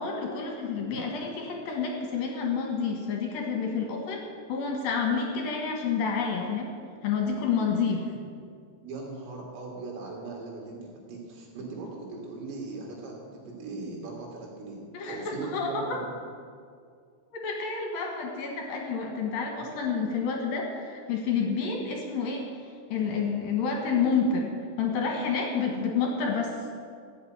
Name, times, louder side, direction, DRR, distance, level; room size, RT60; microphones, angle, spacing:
voice 1, 0.0-6.7 7.0-8.1 14.9-16.0 17.3-22.5 22.9-24.5 24.8-26.5, left 5 dB, 65° left, 1 dB, 2.6 m, -29 dB
voice 2, 8.8-14.8 15.1-16.1, right 3 dB, 80° right, -3 dB, 5.6 m, -39 dB
14.5 x 8.1 x 8.8 m, 2.2 s
omnidirectional pair, 5.7 m